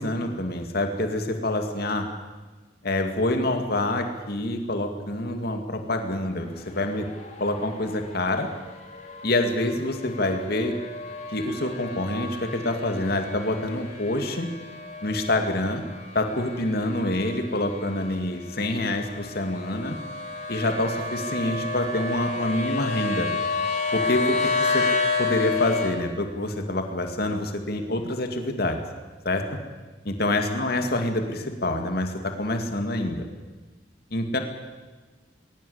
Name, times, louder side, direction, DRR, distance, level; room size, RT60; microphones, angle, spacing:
voice 1, 0.0-2.1 2.8-7.1 7.4-8.5 9.2-10.7 11.3-14.5 15.0-15.8 16.1-20.0 20.5-23.3 23.9-24.8 25.2-28.8 29.2-29.4 30.0-33.3 34.1-34.4, left 1 dB, 55° left, 5 dB, 2.4 m, -26 dB
sound 1, 6.3-25.9, left 4 dB, 40° left, 3.3 m, -31 dB
21.0 x 19.0 x 8.1 m, 1.3 s
head